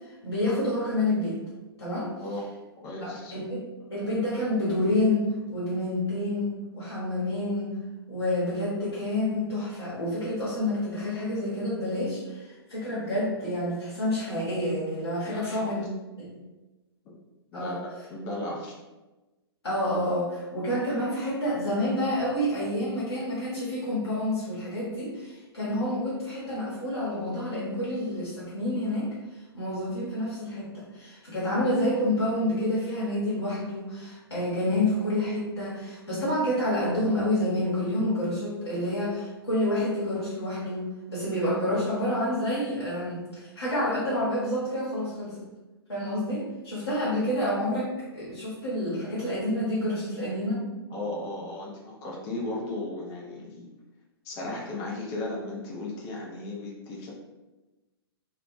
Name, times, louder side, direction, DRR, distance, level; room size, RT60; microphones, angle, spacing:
voice 1, 0.1-1.4 1.8-2.1 3.0-7.8 8.1-15.8 16.2-16.3 17.5-17.8 19.6-29.1 29.5-45.4 45.9-50.6, left 1 dB, 75° left, -9 dB, 0.9 m, -28 dB
voice 2, 2.8-3.3 15.2-15.7 17.5-17.8 18.1-18.8 50.9-53.7 54.2-57.1, left 2 dB, 25° left, -3 dB, 0.4 m, -35 dB
2.2 x 2.1 x 2.6 m, 1.1 s
figure-of-eight pair, 115°, 13 cm